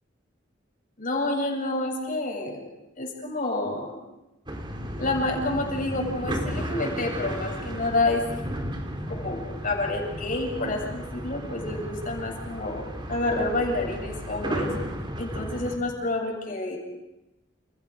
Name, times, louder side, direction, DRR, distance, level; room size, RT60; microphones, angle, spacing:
voice 1, 1.0-2.7 3.0-4.0 5.0-8.2 9.1-14.7 15.2-16.8, left 2 dB, 45° left, 1 dB, 7.8 m, -29 dB
sound 1, 4.5-15.8, equal, 25° right, 3.6 m, -34 dB
30.0 x 30.0 x 5.1 m, 0.96 s
head